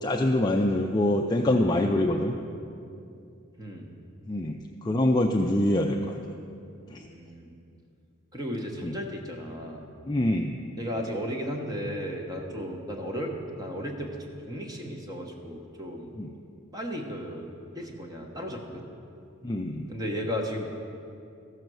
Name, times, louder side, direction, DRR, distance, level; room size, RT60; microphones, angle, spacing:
voice 1, 0.0-2.3 4.3-4.6 4.8-6.1 6.9-7.0 8.8-8.9 10.1-10.5 16.2-16.3 19.4-19.9, left 1 dB, 20° left, 1 dB, 0.4 m, -25 dB
voice 2, 3.6-3.9 7.0-7.5 8.3-9.9 10.8-14.2 14.5-16.1 16.7-17.5 17.7-18.9 19.9-20.7, equal, 20° right, 1 dB, 1.1 m, -35 dB
14.5 x 6.6 x 6.2 m, 2.6 s
head